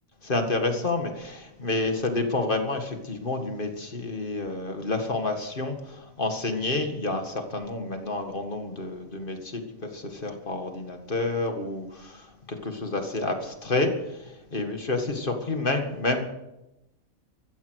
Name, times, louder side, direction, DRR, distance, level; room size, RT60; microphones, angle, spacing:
voice 1, 0.2-16.3, left 2 dB, 40° left, 5 dB, 2.0 m, -29 dB
14.5 x 14.0 x 6.4 m, 0.93 s
omnidirectional pair, 1.4 m